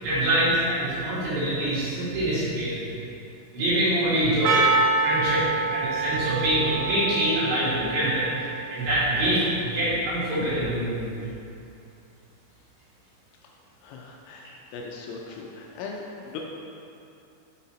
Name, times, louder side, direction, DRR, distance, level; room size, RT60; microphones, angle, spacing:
voice 1, 0.0-2.8 3.5-4.8 5.0-8.2 8.7-11.1, right 1 dB, 60° right, -10 dB, 3.3 m, -25 dB
Percussion, 4.4-9.7, right 3 dB, 85° right, 2.7 m, -27 dB
voice 2, 13.8-16.4, left 4 dB, 80° left, -1 dB, 3.0 m, -39 dB
7.5 x 5.7 x 4.2 m, 2.7 s
omnidirectional pair, 5.9 m